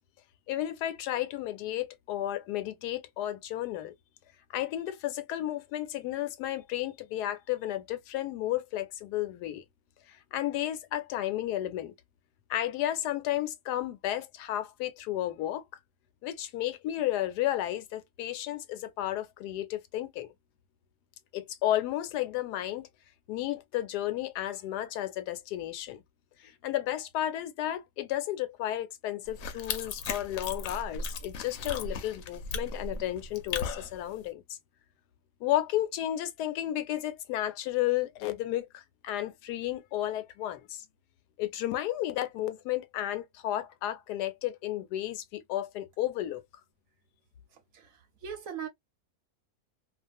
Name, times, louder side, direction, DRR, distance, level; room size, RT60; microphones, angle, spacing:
voice 1, 0.5-3.9 4.5-9.6 10.1-11.9 12.5-15.6 16.2-20.3 21.3-22.9 23.3-26.0 26.4-34.6 35.4-40.8 41.4-46.4, left 13 dB, 85° left, 1.1 m, -33 dB
sound 1, 29.3-34.2, left 4 dB, 65° left, 0.9 m, -37 dB
voice 2, 47.5-48.7, right 8 dB, 65° right, 0.9 m, -41 dB
2.4 x 2.4 x 2.5 m
omnidirectional pair, 1.7 m